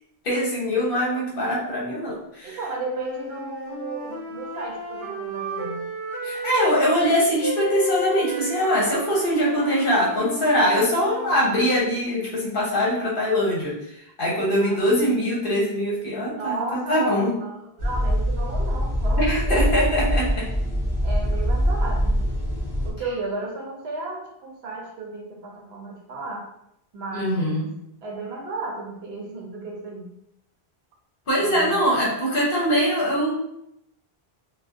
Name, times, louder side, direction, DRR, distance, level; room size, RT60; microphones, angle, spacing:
voice 1, 0.2-2.6 6.2-17.4 19.2-20.5 27.1-27.7 31.3-33.3, equal, 60° left, -5 dB, 0.9 m, -22 dB
voice 2, 2.4-5.9 14.6-15.2 16.3-19.7 21.0-22.2 22.8-26.5 26.9-27.6 28.0-30.1 31.4-31.8, right 2 dB, 80° right, 1 dB, 0.8 m, -34 dB
sound 1, 2.8-6.9 7.4-11.6, left 1 dB, 20° left, 1.0 m, -33 dB
sound 2, 17.8-22.9, equal, 40° left, 0.3 m, -23 dB
2.4 x 2.2 x 2.4 m, 0.77 s
omnidirectional pair, 1.1 m